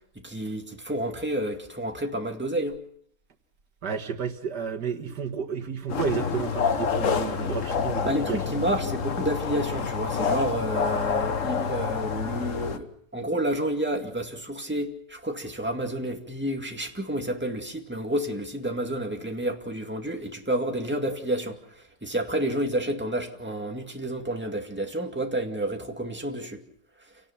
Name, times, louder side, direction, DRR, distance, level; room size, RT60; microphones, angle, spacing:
voice 1, 0.2-2.8 8.0-26.6, right 1 dB, 5° right, 2.1 m, -30 dB
voice 2, 3.8-8.4, right 6 dB, 80° right, 2.3 m, -31 dB
sound 1, 5.9-12.8, left 6 dB, 50° left, 1.4 m, -28 dB
29.0 x 18.0 x 5.8 m
omnidirectional pair, 1.8 m